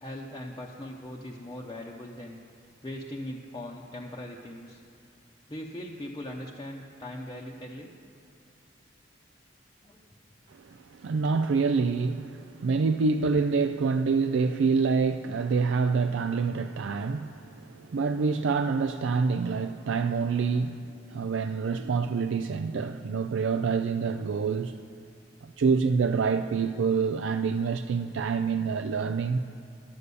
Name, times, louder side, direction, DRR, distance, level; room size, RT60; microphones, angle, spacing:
voice 1, 0.0-2.4 2.8-4.8 5.5-7.9 9.8-10.0, left 1 dB, 20° left, 0.7 m, -40 dB
voice 2, 10.5-24.8 25.4-29.4, right 5 dB, 85° right, 0.4 m, -27 dB
11.0 x 8.2 x 6.8 m
head